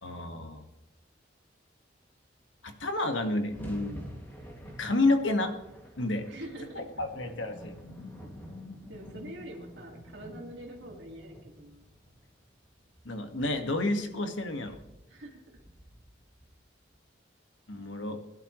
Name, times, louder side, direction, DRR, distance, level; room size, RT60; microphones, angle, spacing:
voice 1, 0.0-0.6 2.6-4.0 4.6-5.5 6.0-6.3 6.7-7.8 13.0-14.8 17.7-18.2, left 2 dB, 90° left, 5 dB, 1.8 m, -30 dB
sound 1, 2.4-2.5 2.6-17.0, equal, 10° left, 2.4 m, -50 dB
voice 2, 6.3-6.8 8.9-11.9 15.1-15.4, right 1 dB, 75° right, 0 dB, 2.2 m, -44 dB
sound 2, 6.7-12.0, left 1 dB, 40° left, 2.7 m, -50 dB
21.5 x 11.5 x 3.2 m, 0.92 s
head